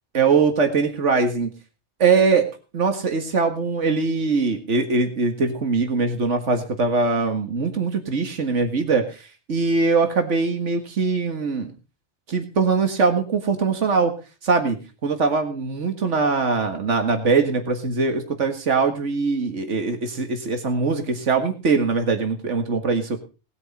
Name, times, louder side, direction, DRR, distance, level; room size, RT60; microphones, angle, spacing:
voice 1, 0.1-1.5 2.0-2.4 2.7-11.7 12.3-14.1 14.4-14.8 15.0-23.2, right 4 dB, 80° right, 6 dB, 2.1 m, -22 dB
19.0 x 9.6 x 4.2 m, 0.34 s
omnidirectional pair, 1.2 m